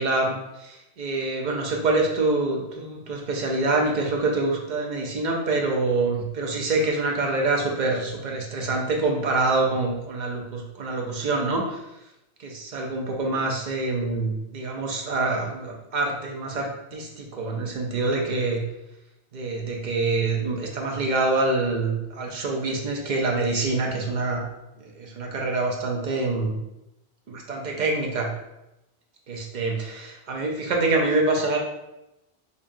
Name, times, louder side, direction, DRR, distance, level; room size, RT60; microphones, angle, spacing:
voice 1, 0.0-11.8 12.4-18.6 19.3-24.5 24.8-26.6 27.3-28.3 29.3-31.6, right 3 dB, 50° right, 0 dB, 0.8 m, -26 dB
5.4 x 2.4 x 2.6 m, 0.92 s
omnidirectional pair, 1.1 m